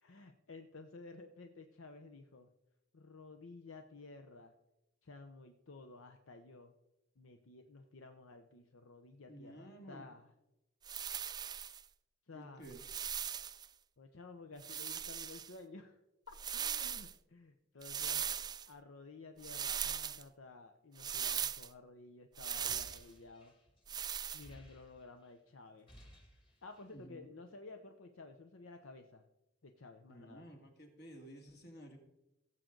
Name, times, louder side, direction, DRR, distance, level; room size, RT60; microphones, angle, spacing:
voice 1, 0.0-2.5 2.9-4.5 5.0-6.7 7.2-10.3 12.3-12.7 14.0-16.0 16.3-18.2 18.7-23.5 24.3-25.9 26.6-29.2 29.6-30.5, left 3 dB, 80° left, 6 dB, 0.8 m, -53 dB
voice 2, 9.3-10.1 12.3-12.8 26.9-27.3 30.1-32.0, right 1 dB, 55° left, 3 dB, 2.3 m, -53 dB
sound 1, 10.8-11.8 12.6-13.7 14.6-15.5 16.3-17.1 17.8-18.7 19.4-20.2 21.0-21.7 22.4-23.0 23.9-24.5, right 8 dB, 20° right, 0.3 m, -39 dB
sound 2, 22.4-25.3 25.6-27.0, equal, 25° left, 2.1 m, -59 dB
17.0 x 7.6 x 3.9 m, 0.93 s
head